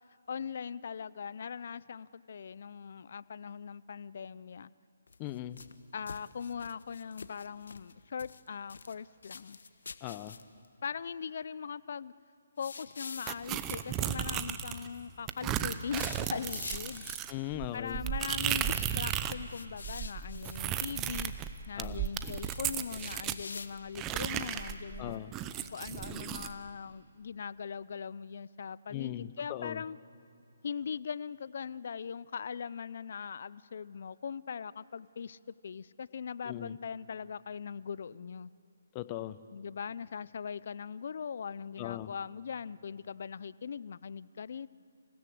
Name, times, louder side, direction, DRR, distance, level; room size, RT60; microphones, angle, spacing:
voice 1, 0.3-4.7 5.9-9.6 10.8-12.1 12.6-17.1 17.7-21.3 21.7-25.2 25.7-30.0 30.6-38.5 39.5-44.7, left 6 dB, 55° left, 19 dB, 0.5 m, -40 dB
sound 1, 5.1-5.8 6.1-7.9 8.2-9.0 9.2-10.7 12.6-13.9 15.8-17.4 19.4-20.6 22.4-24.0, left 4 dB, 75° left, 1.2 m, -46 dB
voice 2, 5.2-5.6 10.0-10.4 17.3-18.0 21.8-22.0 25.0-25.3 28.9-29.8 36.5-36.8 38.9-39.4 41.8-42.1, left 15 dB, 25° left, 14 dB, 0.7 m, -39 dB
sound 2, 13.3-14.9 15.3-19.4 19.7-23.4 23.9-26.5, right 11 dB, 20° right, 0.7 m, -35 dB
27.0 x 17.0 x 8.6 m, 2.4 s
hypercardioid pair, 155°, 0 cm